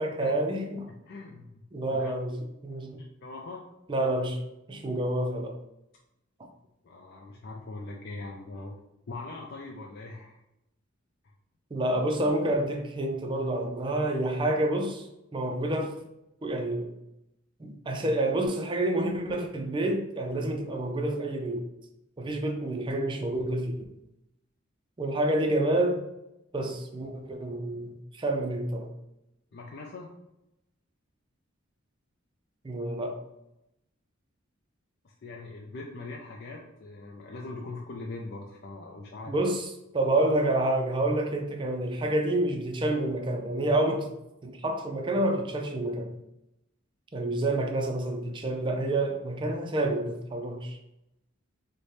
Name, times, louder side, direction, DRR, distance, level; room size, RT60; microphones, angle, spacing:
voice 1, 0.0-0.9 1.7-3.0 3.9-4.4 4.7-5.6 11.7-15.0 15.3-16.0 16.4-16.9 17.6-21.6 22.2-23.8 25.0-26.0 26.5-28.9 32.6-33.2 39.3-39.7 39.9-44.1 44.4-46.1 47.1-50.8, right 1 dB, 25° right, 0.4 m, -28 dB
voice 2, 1.1-1.6 1.9-2.1 2.9-3.7 6.8-8.7 9.1-10.4 20.3-20.4 29.5-30.1 35.0-39.4, left 2 dB, 50° left, 0.4 m, -41 dB
4.0 x 2.1 x 3.2 m
head